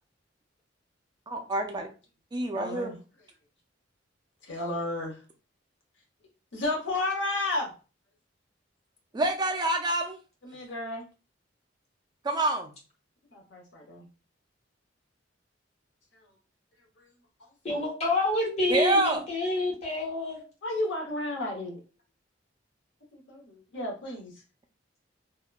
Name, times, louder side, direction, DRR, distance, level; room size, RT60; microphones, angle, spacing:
voice 1, 1.3-1.9 2.3-3.0 9.1-10.2 12.2-12.7 18.7-19.2, right 2 dB, 20° right, 4 dB, 0.3 m, -27 dB
voice 2, 2.5-3.0 4.5-5.2 6.5-7.7 10.4-11.1 13.3-14.1 20.6-21.8 23.1-24.3, left 2 dB, 70° left, 0 dB, 0.9 m, -32 dB
voice 3, 17.6-20.4, left 2 dB, 35° left, -2 dB, 1.0 m, -28 dB
2.9 x 2.1 x 2.3 m, 0.34 s
head